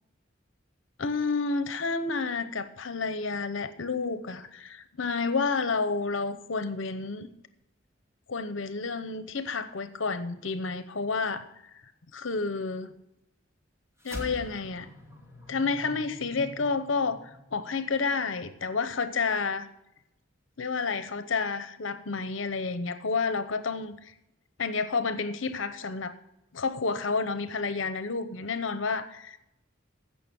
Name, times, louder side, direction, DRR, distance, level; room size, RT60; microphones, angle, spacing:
voice 1, 1.0-7.3 8.3-11.5 12.1-12.9 14.0-14.9 15.5-19.7 20.6-24.1 24.6-26.1 26.5-29.4, left 4 dB, 75° left, 11 dB, 0.9 m, -30 dB
sound 1, 14.0-18.6, left 1 dB, 15° right, 2.5 m, -44 dB
15.5 x 6.0 x 6.2 m, 0.84 s
head